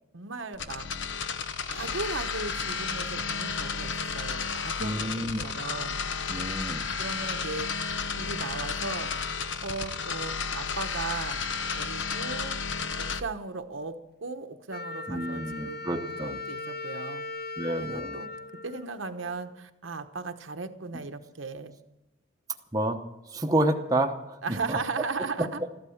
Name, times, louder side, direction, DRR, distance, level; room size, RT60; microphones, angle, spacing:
voice 1, 0.1-0.9 1.7-6.0 7.0-7.7 8.2-9.1 9.6-11.4 11.8-12.6 13.0-17.2 17.7-18.3 18.6-21.8 24.4-25.7, right 4 dB, 75° right, 7 dB, 1.0 m, -37 dB
sound 1, 0.5-13.2, left 5 dB, 65° left, 0.9 m, -32 dB
voice 2, 4.8-5.4 6.3-6.9 15.1-16.4 17.6-18.2 22.7-23.0 23.3-24.8, right 1 dB, 20° right, 3 dB, 0.9 m, -29 dB
Wind instrument woodwind instrument, 14.7-19.5, left 3 dB, 50° left, 0.5 m, -39 dB
14.0 x 11.5 x 7.1 m, 0.96 s
head